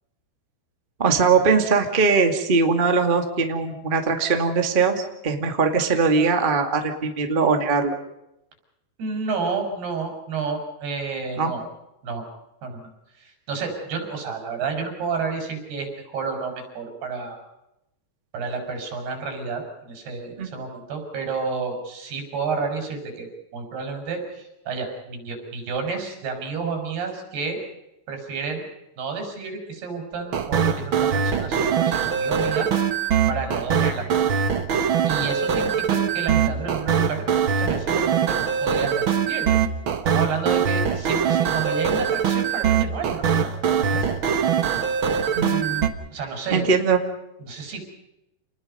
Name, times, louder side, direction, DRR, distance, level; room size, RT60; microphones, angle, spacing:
voice 1, 1.0-7.9 11.4-11.5 20.4-20.5 45.3-45.9 46.5-47.0, right 4 dB, 20° right, 5 dB, 1.4 m, -21 dB
voice 2, 9.0-11.6 12.0-12.3 12.6-12.9 13.2-17.4 18.3-23.3 23.5-27.6 28.1-28.6 29.0-32.7 33.3-34.1 35.1-37.2 37.6-39.5 40.1-44.1 46.1-46.7 47.4-47.9, right 5 dB, 85° right, 4 dB, 7.2 m, -30 dB
sound 1, 30.3-45.9, right 7 dB, 65° right, 1.2 m, -22 dB
28.5 x 20.0 x 5.4 m, 0.88 s
omnidirectional pair, 4.5 m